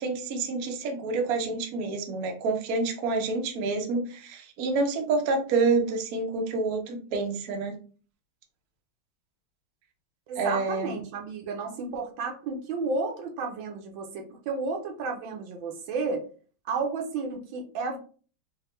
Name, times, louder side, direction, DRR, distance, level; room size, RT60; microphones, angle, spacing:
voice 1, 0.0-7.8 10.4-11.0, right 3 dB, 60° right, 3 dB, 1.0 m, -28 dB
voice 2, 10.3-16.2 16.6-18.0, right 4 dB, 75° right, 2 dB, 1.4 m, -32 dB
4.8 x 2.1 x 3.1 m, 0.40 s
omnidirectional pair, 2.2 m